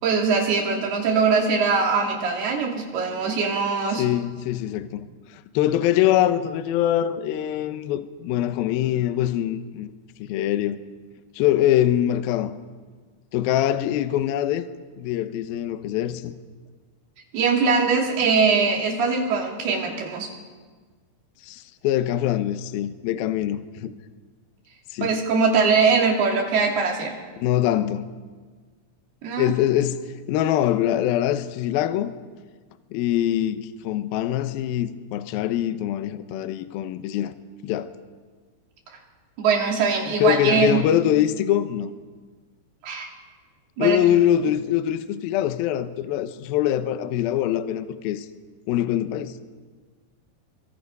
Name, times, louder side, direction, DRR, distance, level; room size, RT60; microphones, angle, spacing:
voice 1, 0.0-4.0 17.3-20.3 25.0-27.2 29.2-29.5 39.4-40.8 42.8-43.1 43.8-44.0, right 5 dB, 65° right, 4.7 m, -22 dB
voice 2, 3.9-9.9 10.2-10.8 11.4-12.5 13.3-14.7 15.0-16.3 21.4-23.9 24.9-25.2 27.4-28.1 29.4-30.0 30.3-32.2 32.9-37.3 37.6-37.9 40.2-41.9 43.8-48.3 48.7-49.4, left 12 dB, 75° left, 2.4 m, -23 dB
25.5 x 23.5 x 5.5 m
omnidirectional pair, 5.1 m